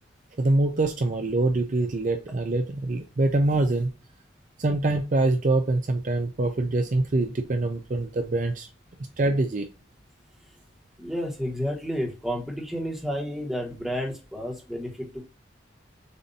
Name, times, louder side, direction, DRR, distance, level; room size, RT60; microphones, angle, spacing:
voice 1, 0.4-3.9 4.6-8.7 9.2-9.7, right 2 dB, 40° right, 6 dB, 0.5 m, -24 dB
voice 2, 11.0-15.3, equal, ahead, -1 dB, 1.2 m, -31 dB
6.8 x 2.7 x 2.6 m, 0.32 s
head